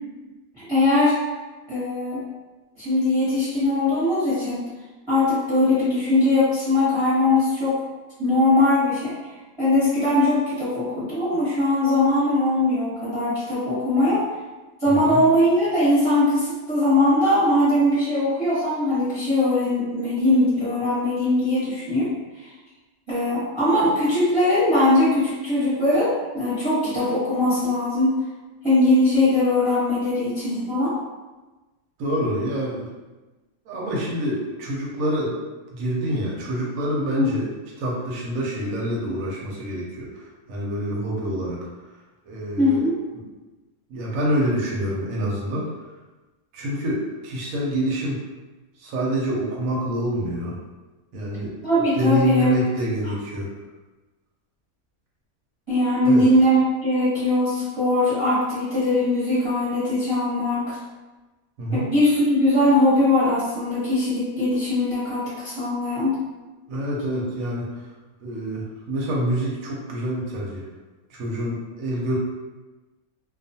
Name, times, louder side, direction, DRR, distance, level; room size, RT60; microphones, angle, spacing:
voice 1, 0.5-1.1 1.7-2.2 2.8-4.6 5.1-7.8 8.2-9.1 9.6-14.2 14.8-22.1 23.1-28.2 28.6-30.9 37.2-37.3 42.6-42.9 51.6-52.5 55.7-60.8 61.7-66.1, left 1 dB, 25° right, -12 dB, 0.8 m, -20 dB
voice 2, 14.9-15.2 32.0-32.9 33.7-35.4 35.7-37.5 37.8-41.6 42.2-42.8 43.1-43.2 43.9-45.7 46.5-48.2 48.8-50.6 51.1-51.6 51.9-53.5 56.0-56.2 61.6-61.8 66.7-67.9 68.2-70.6 71.1-72.2, right 1 dB, 75° right, -4 dB, 1.0 m, -26 dB
2.3 x 2.3 x 2.6 m, 1.2 s
omnidirectional pair, 1.5 m